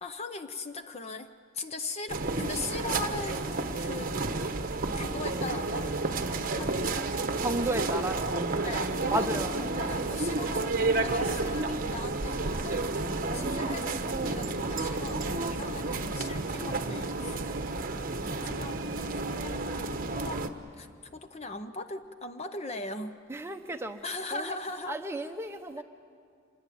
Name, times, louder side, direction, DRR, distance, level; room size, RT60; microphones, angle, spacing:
voice 1, 0.0-1.3 1.5-4.1 4.9-7.5 8.6-9.3 9.6-17.4 18.4-18.8 19.4-19.6 20.2-20.4 20.7-23.2 24.0-25.0 25.8-25.9, left 3 dB, 30° left, 9 dB, 0.7 m, -40 dB
sound 1, 2.1-20.5, right 3 dB, 45° right, 1.1 m, -31 dB
voice 2, 7.4-8.2 9.1-9.6 23.3-24.0 24.3-24.6 24.9-25.8, right 1 dB, 10° right, 6 dB, 1.0 m, -33 dB
26.0 x 20.0 x 8.5 m, 2.2 s
head